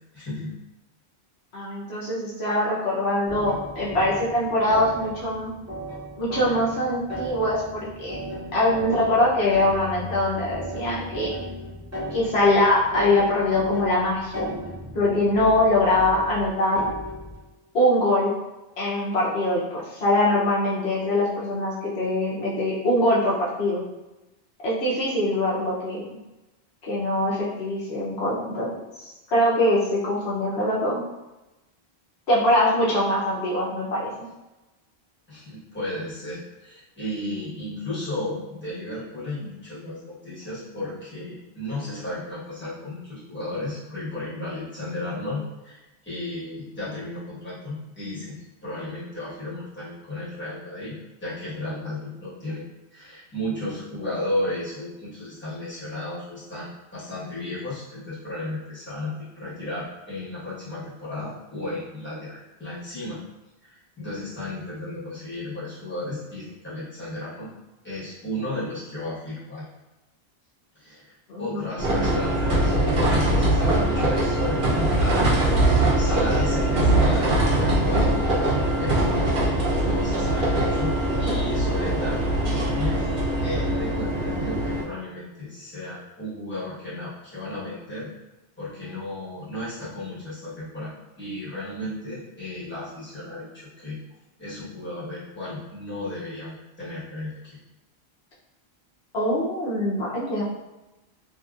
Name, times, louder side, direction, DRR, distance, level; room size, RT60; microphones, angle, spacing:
voice 1, 0.1-0.5 35.3-52.6 52.9-63.2 63.7-67.5 67.8-69.6 70.7-79.0 79.8-83.1 83.4-88.1 88.6-94.0 94.4-97.6, left 1 dB, 10° left, -11 dB, 1.3 m, -34 dB
voice 2, 1.5-5.5 6.2-8.2 8.5-11.3 12.1-14.5 14.9-16.8 17.7-18.3 18.8-23.8 24.6-26.1 26.8-28.7 29.3-31.0 32.3-34.2 71.3-72.2 99.1-100.4, left 1 dB, 80° left, -7 dB, 1.1 m, -23 dB
sound 1, 3.3-17.4, equal, 20° right, 0.6 m, -35 dB
sound 2, 71.8-84.8, right 1 dB, 65° right, 0.9 m, -22 dB
2.8 x 2.7 x 2.4 m, 1.0 s
omnidirectional pair, 1.1 m